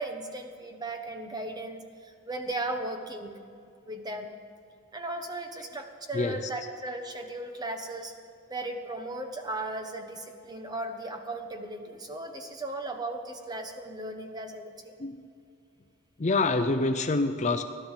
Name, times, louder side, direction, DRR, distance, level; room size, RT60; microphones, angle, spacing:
voice 1, 0.0-3.4 3.9-4.3 4.9-8.1 8.5-14.9, right 2 dB, 20° right, 5 dB, 1.1 m, -36 dB
voice 2, 6.1-6.5 15.0-15.3 16.2-17.6, left 3 dB, 35° left, 8 dB, 0.5 m, -26 dB
16.5 x 11.5 x 7.3 m, 2.4 s
head